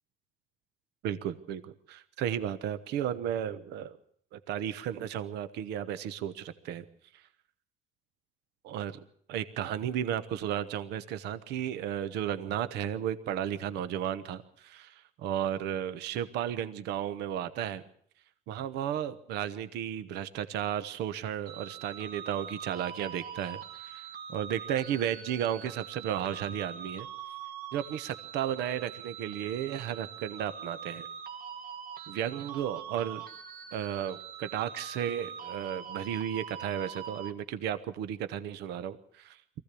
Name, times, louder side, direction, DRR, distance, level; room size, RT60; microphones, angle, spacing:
voice 1, 1.0-1.6 1.9-3.9 4.3-6.8 8.6-9.0 9.3-17.8 18.5-27.1 27.7-31.1 32.1-33.2 33.7-39.4, right 10 dB, 85° right, 12 dB, 1.1 m, -34 dB
sound 1, 21.5-37.3, right 7 dB, 60° right, 1.7 m, -43 dB
23.5 x 15.5 x 8.4 m, 0.63 s
cardioid pair, 110°, 17 cm